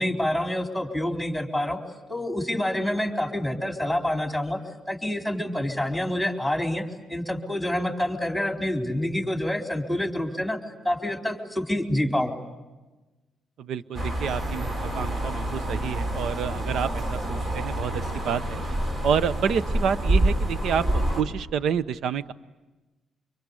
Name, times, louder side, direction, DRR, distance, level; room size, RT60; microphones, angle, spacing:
voice 1, 0.0-1.8 2.1-4.6 4.9-10.6 10.8-12.3, left 1 dB, ahead, 3 dB, 4.0 m, -27 dB
voice 2, 13.6-18.6 19.0-22.3, right 7 dB, 70° right, 15 dB, 0.8 m, -28 dB
sound 1, 13.9-21.2, right 1 dB, 45° right, 4.8 m, -27 dB
26.0 x 23.0 x 9.8 m, 1.2 s
cardioid pair, 90°, 0 cm